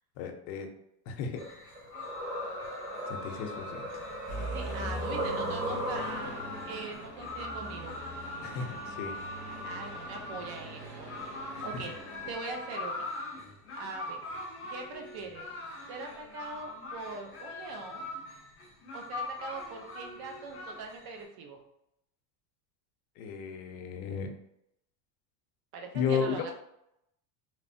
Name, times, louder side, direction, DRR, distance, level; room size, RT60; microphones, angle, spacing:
voice 1, 0.2-0.7 1.1-1.6 3.1-3.9 8.4-9.1 11.5-11.7 23.2-24.3 25.9-26.4, left 6 dB, 80° left, 5 dB, 0.7 m, -34 dB
sound 1, 1.3-6.4, right 1 dB, 75° right, 1.3 m, -37 dB
sound 2, 1.4-21.2, left 2 dB, 30° left, 0.5 m, -42 dB
sound 3, 4.3-12.3, right 1 dB, 15° right, 0.7 m, -42 dB
voice 2, 4.5-7.9 9.6-11.9 12.3-13.1 13.8-14.2 14.7-15.5 15.9-18.1 18.9-21.6 25.7-26.5, right 3 dB, 50° right, 3 dB, 0.6 m, -42 dB
3.1 x 2.0 x 2.5 m, 0.80 s
cardioid pair, 150°, 49 cm